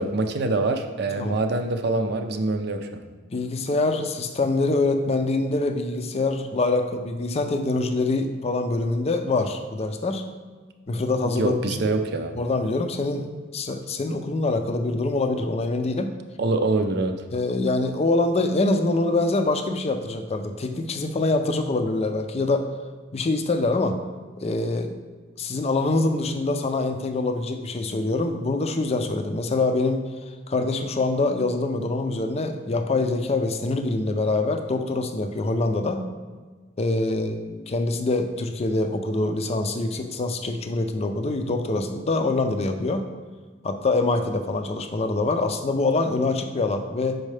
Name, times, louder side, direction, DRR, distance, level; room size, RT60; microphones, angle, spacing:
voice 1, 0.0-3.0 11.4-12.4 16.4-17.2, right 2 dB, 60° right, 6 dB, 0.5 m, -25 dB
voice 2, 3.3-10.3 10.9-11.9 12.3-13.3 13.5-16.1 17.3-22.7 23.1-24.0 24.4-24.9 25.4-30.0 30.5-36.0 36.8-43.1 43.6-47.2, left 2 dB, 35° left, 6 dB, 0.5 m, -25 dB
6.2 x 4.6 x 3.3 m, 1.4 s
head